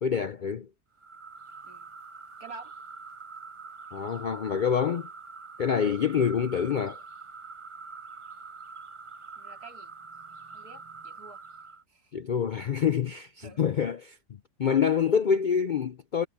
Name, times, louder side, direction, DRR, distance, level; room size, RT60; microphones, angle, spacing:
voice 1, 0.0-0.7 3.9-5.1 5.6-7.0 12.1-14.2 14.6-16.3, left 7 dB, 75° left, 0.4 m, -26 dB
sound 1, 1.0-11.8, right 4 dB, 35° right, 0.5 m, -45 dB
voice 2, 2.4-2.8 9.4-9.9 10.5-11.4 11.9-12.1 13.4-13.6, right 4 dB, 80° right, 3.7 m, -48 dB
omnidirectional pair, 1.6 m